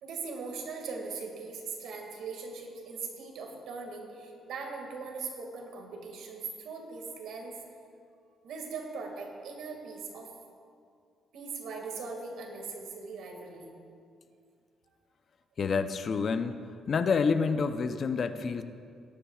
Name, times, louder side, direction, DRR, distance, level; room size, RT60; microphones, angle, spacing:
voice 1, 0.0-7.6 8.4-10.3 11.3-13.7, right 4 dB, 80° right, 2 dB, 2.0 m, -40 dB
voice 2, 15.6-16.6 16.9-18.6, left 5 dB, 50° left, 10 dB, 0.6 m, -28 dB
17.5 x 11.5 x 2.4 m, 2.3 s
cardioid pair, 90°, 0 cm